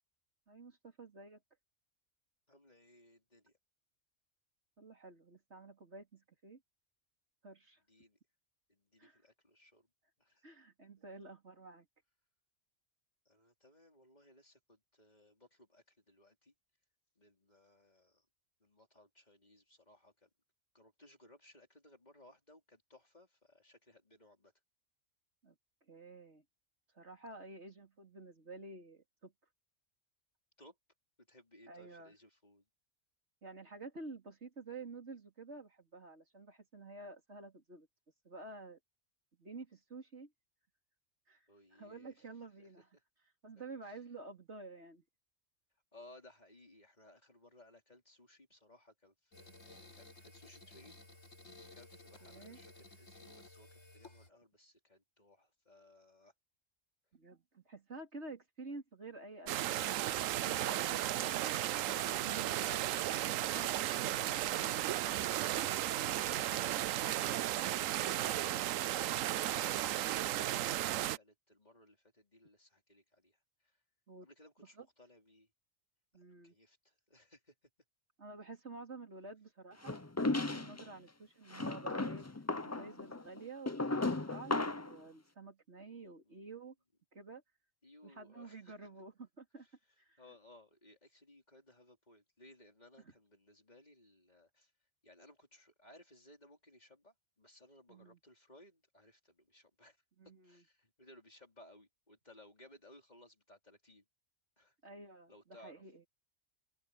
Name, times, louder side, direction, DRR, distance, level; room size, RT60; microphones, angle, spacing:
voice 1, 0.5-1.4 4.8-6.6 7.4-7.8 9.0-9.2 10.4-11.9 25.4-25.6 25.9-26.4 26.9-29.3 31.7-32.1 33.4-37.9 38.2-38.8 39.4-40.3 41.3-41.5 41.7-42.9 43.4-45.0 52.2-52.6 57.1-61.4 62.1-63.0 74.1-74.3 74.8-74.9 76.1-76.5 78.2-80.0 80.5-86.7 87.1-87.4 88.0-89.7 90.0-90.2 93.0-93.1 97.9-98.2 100.2-100.6 104.8-106.0, right 3 dB, 60° right, 3.7 m, -50 dB
voice 2, 2.5-3.5 7.9-8.2 8.7-9.9 10.2-10.4 13.2-16.5 17.2-18.3 18.6-20.3 20.7-24.5 30.6-30.8 31.3-32.6 41.5-42.3 42.6-43.0 43.9-44.0 45.9-51.1 51.7-56.3 60.6-61.3 65.4-73.8 74.2-75.5 76.1-77.5 80.9-81.1 85.8-86.6 87.8-88.8 89.6-89.7 90.2-94.7 95.0-104.0 104.6-104.7 105.3-105.8, left 1 dB, 35° left, 4.7 m, -62 dB
sound 1, 49.3-54.3, left 2 dB, 80° left, 4.6 m, -56 dB
sound 2, 59.5-71.2, right 13 dB, 85° right, 1.0 m, -34 dB
sound 3, 79.8-80.9 81.5-85.0, left 2 dB, 20° left, 0.5 m, -35 dB
omnidirectional pair, 1.3 m